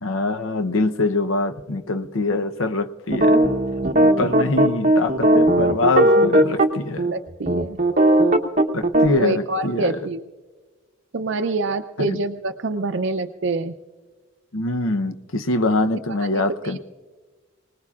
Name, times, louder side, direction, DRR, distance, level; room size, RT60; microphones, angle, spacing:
voice 1, 0.0-3.5 4.2-7.1 8.7-10.1 12.0-12.2 14.5-16.8, left 2 dB, 90° left, 9 dB, 0.8 m, -24 dB
sound 1, 3.1-6.7 7.0-7.1 7.5-9.1, right 1 dB, 35° right, 0.9 m, -17 dB
voice 2, 3.8-4.3 7.1-7.8 9.1-10.2 11.1-13.7 16.2-16.8, right 3 dB, 65° right, 6 dB, 0.5 m, -26 dB
24.5 x 19.0 x 2.4 m, 1.4 s
head